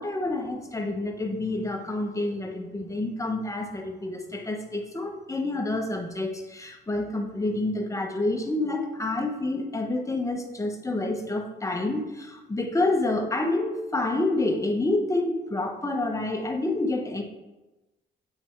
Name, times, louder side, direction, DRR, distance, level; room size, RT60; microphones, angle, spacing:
voice 1, 0.0-17.2, left 2 dB, 15° left, 3 dB, 1.2 m, -28 dB
8.7 x 4.5 x 4.6 m, 1.1 s
cardioid pair, 90°, 20 cm